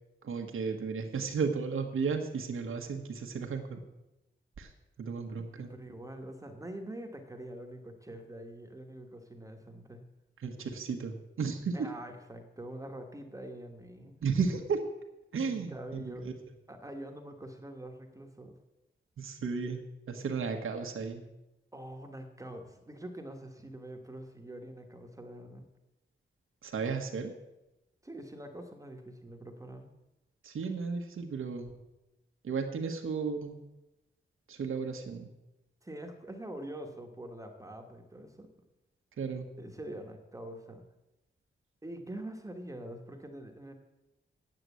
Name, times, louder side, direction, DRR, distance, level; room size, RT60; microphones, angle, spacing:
voice 1, 0.2-3.8 4.6-4.7 5.0-5.7 10.4-11.9 14.2-14.8 15.3-16.3 19.2-19.8 20.1-21.2 26.6-27.3 30.4-31.7 32.4-33.7 34.5-35.3 39.2-39.5, right 5 dB, 90° right, 4 dB, 1.4 m, -34 dB
voice 2, 5.4-10.0 11.7-14.2 15.4-16.3 16.7-18.5 20.1-20.4 21.7-25.7 28.0-29.9 35.8-38.5 39.6-40.8 41.8-43.7, right 1 dB, 15° right, 3 dB, 1.1 m, -45 dB
9.1 x 7.8 x 8.3 m, 0.95 s
wide cardioid pair, 165°, 20 cm